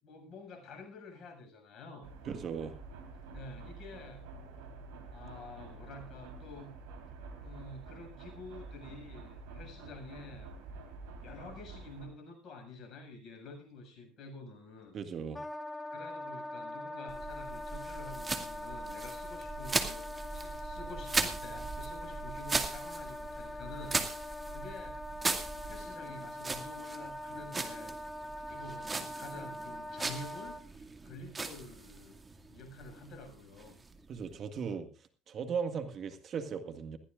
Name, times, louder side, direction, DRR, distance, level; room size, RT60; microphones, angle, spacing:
voice 1, 0.0-2.1 3.3-4.3 5.1-6.7 7.4-10.5 11.2-15.0 15.9-20.1 20.3-25.0 25.6-27.9 28.2-32.2 32.5-33.8, left 3 dB, 50° left, 7.2 m, -49 dB
sound 1, 2.0-12.1, right 3 dB, 75° right, 3.8 m, -48 dB
voice 2, 2.3-2.8 14.9-15.4 34.1-34.9 35.3-37.0, right 6 dB, 45° right, 1.8 m, -37 dB
Wind instrument woodwind instrument, 15.3-30.6, left 1 dB, 10° left, 1.8 m, -43 dB
sound 2, 17.1-34.4, right 3 dB, 20° right, 2.2 m, -39 dB
21.0 x 15.0 x 2.5 m
hypercardioid pair, 70°, 0 cm